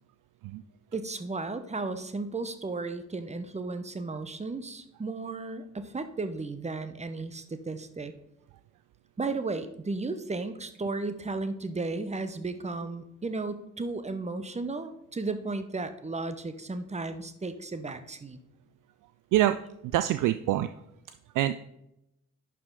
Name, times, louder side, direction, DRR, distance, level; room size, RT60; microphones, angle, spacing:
voice 1, 0.9-8.1 9.2-18.4, right 3 dB, 15° right, 11 dB, 1.0 m, -34 dB
voice 2, 19.8-20.7 21.3-21.5, right 14 dB, 50° right, 11 dB, 0.5 m, -25 dB
11.0 x 5.1 x 3.9 m, 0.82 s
figure-of-eight pair, 40°, 43 cm